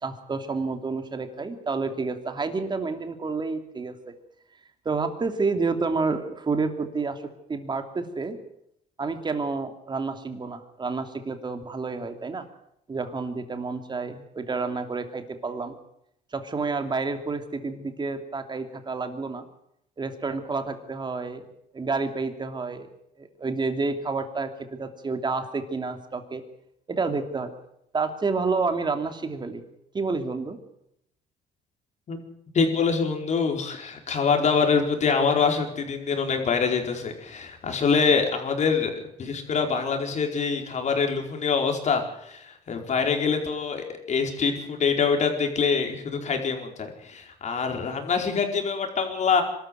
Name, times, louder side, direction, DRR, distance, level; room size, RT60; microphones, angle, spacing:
voice 1, 0.0-4.1 4.8-8.4 9.0-12.5 12.9-15.7 16.3-19.4 20.0-21.4 21.7-22.9 23.2-26.4 26.9-27.5 27.9-29.6 29.9-30.6, right 4 dB, 25° right, 7 dB, 2.9 m, -29 dB
voice 2, 32.5-49.4, left 5 dB, 45° left, 4 dB, 4.6 m, -25 dB
24.0 x 13.0 x 9.4 m, 0.77 s
cardioid pair, 110°, 17 cm